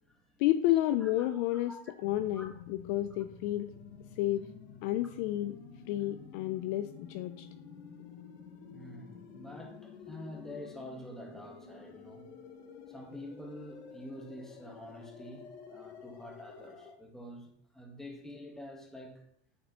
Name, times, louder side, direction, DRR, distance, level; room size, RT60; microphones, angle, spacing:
voice 1, 0.4-1.7 2.0-3.7 4.2-4.5 4.8-5.6 5.9-7.5, left 14 dB, 50° left, 0.4 m, -30 dB
voice 2, 1.0-1.9 2.3-2.5 8.7-12.2 12.9-19.2, left 1 dB, ahead, 1.2 m, -47 dB
sound 1, 2.0-16.9, left 6 dB, 70° left, 1.3 m, -50 dB
9.3 x 4.1 x 2.9 m
hypercardioid pair, 110°, 34 cm